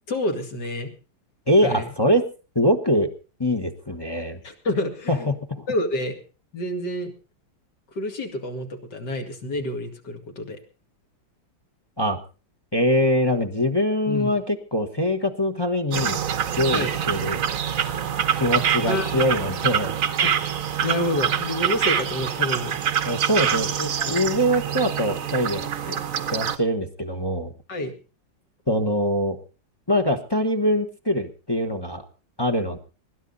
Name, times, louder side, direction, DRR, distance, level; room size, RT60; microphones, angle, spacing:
voice 1, 0.1-0.9 1.6-1.9 4.4-5.3 5.7-6.2 6.5-7.1 7.9-10.6 14.1-14.3 16.7-16.9 18.9-19.3 20.2-20.3 20.8-22.8 23.8-24.2 25.9-26.0 27.7-28.0, left 1 dB, 60° left, 4 dB, 2.9 m, -28 dB
voice 2, 1.5-2.3 2.5-3.1 3.4-4.4 5.1-5.6 12.0-12.2 12.7-16.2 16.6-17.4 18.4-20.0 23.1-23.7 24.1-25.7 26.3-27.5 28.7-29.4 29.9-32.0 32.4-32.8, equal, 15° left, 4 dB, 1.0 m, -23 dB
sound 1, 15.9-26.6, right 8 dB, 55° right, 1.2 m, -25 dB
20.5 x 12.0 x 4.1 m, 0.34 s
omnidirectional pair, 2.0 m